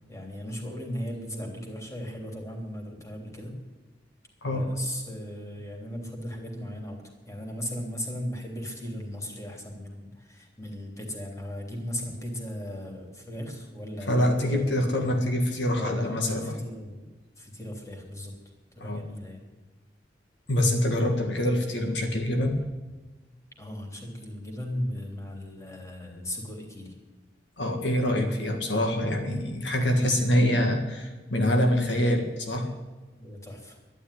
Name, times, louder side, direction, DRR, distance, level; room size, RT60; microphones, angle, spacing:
voice 1, 0.1-3.5 4.4-14.7 14.9-15.1 15.4-18.3 18.7-19.4 23.6-26.9 29.9-30.1 33.1-33.8, equal, 15° left, 1 dB, 3.3 m, -37 dB
voice 2, 14.1-16.5 18.8-19.0 20.5-22.6 27.6-32.7, left 1 dB, 70° left, 4 dB, 1.8 m, -25 dB
12.0 x 11.0 x 9.9 m, 1.3 s
head